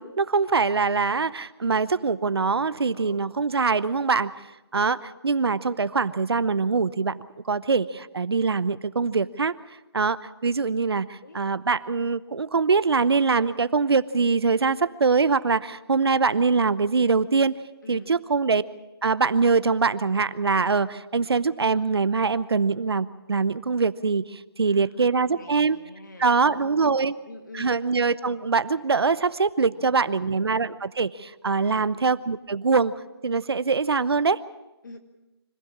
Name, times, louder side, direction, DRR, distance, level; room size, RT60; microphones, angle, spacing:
voice 1, 0.0-4.3 4.7-7.2 7.4-9.5 9.9-17.5 17.9-18.6 19.0-25.8 26.2-27.1 27.5-32.9 33.2-34.4, right 4 dB, 70° right, 16 dB, 0.8 m, -23 dB
voice 2, 17.8-18.2 24.6-27.8 29.6-30.4 31.6-31.9 34.8-35.0, left 3 dB, 45° left, 6 dB, 2.3 m, -46 dB
25.5 x 15.5 x 7.3 m, 0.99 s
hypercardioid pair, 180°, 14 cm